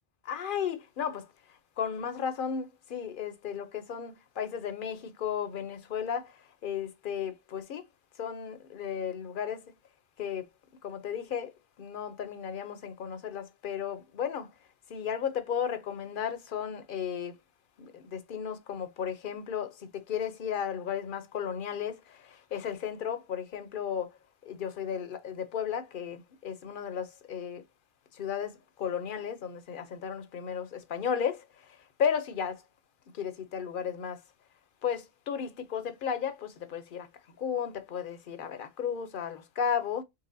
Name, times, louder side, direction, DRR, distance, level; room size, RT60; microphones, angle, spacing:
voice 1, 0.2-7.9 8.2-9.7 10.2-10.5 10.8-11.5 11.8-14.5 14.9-17.4 17.8-24.2 24.4-27.6 28.1-32.6 33.1-34.2 34.8-37.1 37.4-40.0, left 8 dB, 60° left, 0.8 m, -34 dB
4.1 x 3.3 x 2.6 m
omnidirectional pair, 1.0 m